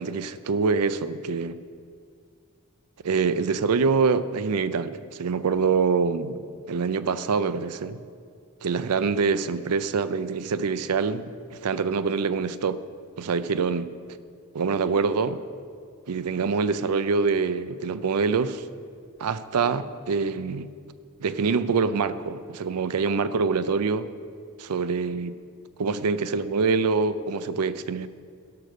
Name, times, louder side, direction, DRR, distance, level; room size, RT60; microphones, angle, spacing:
voice 1, 0.0-1.6 3.0-8.0 8.6-12.8 13.2-13.9 14.5-15.4 16.1-18.6 19.2-20.7 21.2-24.1 24.6-25.4 25.8-28.1, right 5 dB, 90° right, 14 dB, 0.5 m, -25 dB
12.0 x 6.6 x 6.3 m, 2.2 s
head